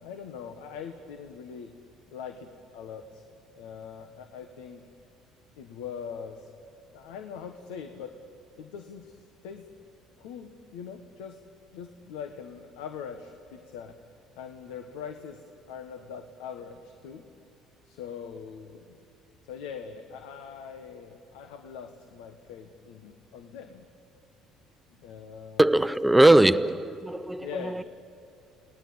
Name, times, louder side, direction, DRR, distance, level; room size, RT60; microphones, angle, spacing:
voice 1, 0.0-1.7 2.1-3.2 3.6-4.8 5.6-6.5 6.9-8.2 8.6-9.7 10.2-11.4 11.7-14.0 14.3-17.3 17.8-19.0 19.5-23.9 25.0-25.7 27.4-27.8, left 7 dB, 85° left, 1.3 m, -42 dB
voice 2, 25.6-27.8, right 1 dB, 10° right, 0.7 m, -20 dB
29.0 x 18.5 x 8.8 m
supercardioid pair, 85°, 0 cm